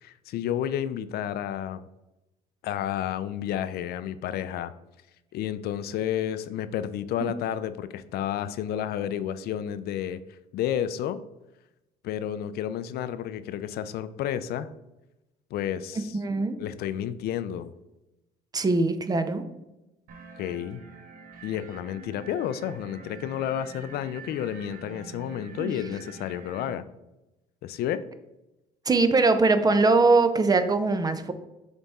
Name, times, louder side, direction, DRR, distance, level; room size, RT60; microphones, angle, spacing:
voice 1, 0.0-1.8 2.6-4.7 5.3-10.2 10.5-11.2 12.0-14.7 15.5-16.2 16.6-17.7 20.4-20.8 21.4-26.8 27.6-28.0, left 10 dB, 70° left, 13 dB, 0.4 m, -31 dB
voice 2, 16.1-16.6 18.5-19.4 25.6-25.7 28.9-31.3, right 3 dB, 20° right, 10 dB, 0.5 m, -22 dB
sound 1, 20.1-26.7, right 4 dB, 55° right, 0.9 m, -46 dB
7.3 x 3.5 x 4.1 m, 0.96 s
cardioid pair, 110°, 17 cm